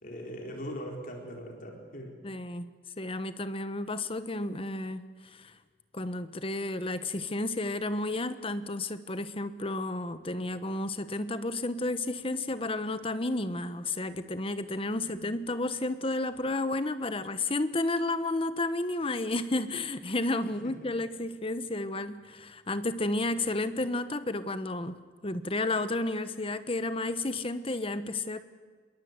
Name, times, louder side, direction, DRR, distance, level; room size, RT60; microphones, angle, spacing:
voice 1, 0.0-2.1 15.0-15.2 20.6-20.9, equal, 45° left, 1 dB, 4.2 m, -41 dB
voice 2, 2.2-5.5 5.9-25.0 25.2-28.4, left 2 dB, 30° left, 12 dB, 1.2 m, -32 dB
27.0 x 21.5 x 8.1 m, 1.6 s
head